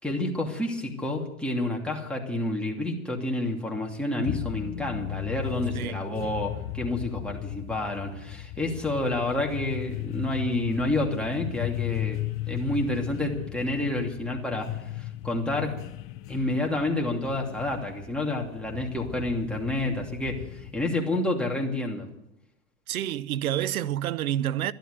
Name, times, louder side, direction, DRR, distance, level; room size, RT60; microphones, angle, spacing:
voice 1, 0.0-14.7 15.0-15.8 16.3-22.1, left 1 dB, ahead, 2.6 m, -29 dB
sound 1, 4.2-21.0, left 17 dB, 30° left, 0.6 m, -36 dB
voice 2, 5.7-6.1 22.9-24.7, right 12 dB, 80° right, 0.7 m, -28 dB
12.5 x 11.5 x 8.1 m
hypercardioid pair, 110°, 43 cm